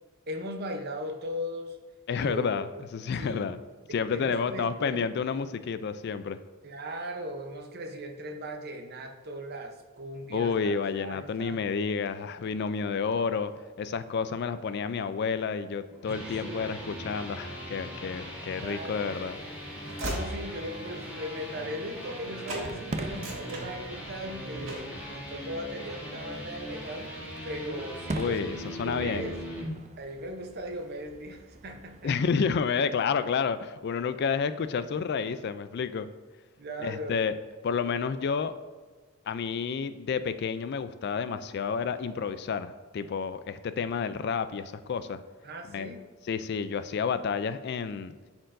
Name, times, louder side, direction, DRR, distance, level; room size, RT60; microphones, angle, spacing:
voice 1, 0.3-1.8 2.1-2.5 3.1-3.5 3.9-5.1 6.6-11.6 16.2-16.7 18.4-19.2 20.1-27.1 27.4-29.4 30.0-32.1 36.6-37.2 45.4-46.1, equal, 50° right, 4 dB, 0.8 m, -38 dB
voice 2, 2.1-3.6 3.9-6.4 10.3-13.5 13.8-19.4 28.1-29.3 32.0-36.1 36.8-37.3 37.6-38.5 39.3-45.2 45.7-45.9 46.3-48.1, left 5 dB, 50° left, 12 dB, 0.3 m, -30 dB
sound 1, 15.9-29.7, equal, 5° right, 2.0 m, -40 dB
Train / Slam, 18.6-22.2 22.4-22.7 23.0-24.2 24.6-25.0, right 1 dB, 65° right, 2.0 m, -39 dB
Fireworks, 22.5-32.4, right 2 dB, 30° right, 0.4 m, -43 dB
11.5 x 4.4 x 2.6 m, 1.4 s
head